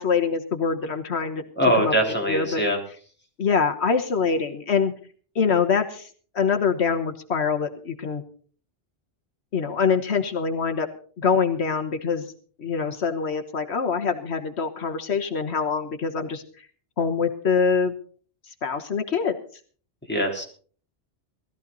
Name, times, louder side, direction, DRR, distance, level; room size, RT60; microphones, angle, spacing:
voice 1, 0.0-1.4 1.8-1.9 2.3-2.6 3.4-4.9 5.3-6.1 6.3-8.2 9.5-10.9 11.2-12.3 12.6-16.4 17.0-17.9 18.6-19.4, left 5 dB, 80° left, 6 dB, 1.5 m, -24 dB
voice 2, 1.6-2.8 20.1-20.4, equal, 10° left, -1 dB, 3.9 m, -22 dB
19.5 x 13.5 x 4.0 m, 0.43 s
omnidirectional pair, 1.1 m